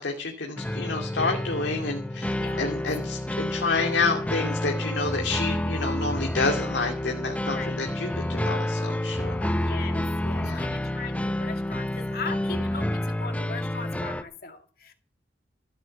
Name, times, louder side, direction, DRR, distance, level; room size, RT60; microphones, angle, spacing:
voice 1, 0.0-9.5 10.4-10.7, left 3 dB, 85° left, 2 dB, 2.6 m, -29 dB
sound 1, 0.6-14.2, left 1 dB, 10° left, 0.7 m, -29 dB
voice 2, 2.3-2.8 7.5-7.8 9.5-14.9, left 4 dB, 55° left, 5 dB, 2.1 m, -39 dB
15.0 x 9.9 x 6.7 m, 0.41 s
head